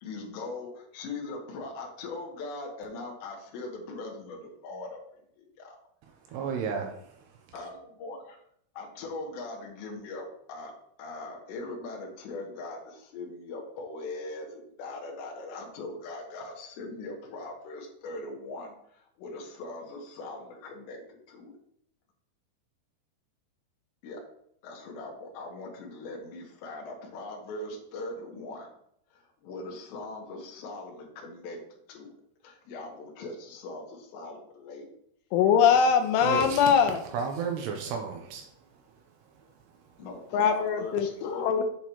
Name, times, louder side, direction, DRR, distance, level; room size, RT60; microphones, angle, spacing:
voice 1, 0.0-5.0 7.5-8.4 8.8-10.7 11.0-21.0 21.3-21.5 24.0-24.2 24.6-28.7 29.1-31.6 31.9-32.1 32.4-34.9 40.0-41.6, left 2 dB, 70° left, 0 dB, 3.4 m, -40 dB
voice 2, 6.3-6.9 36.2-36.6 37.1-38.5, right 6 dB, 80° right, 3 dB, 2.5 m, -32 dB
voice 3, 35.3-37.0 40.3-41.6, left 7 dB, 85° left, 6 dB, 3.2 m, -22 dB
8.2 x 7.3 x 3.0 m, 0.70 s
omnidirectional pair, 5.6 m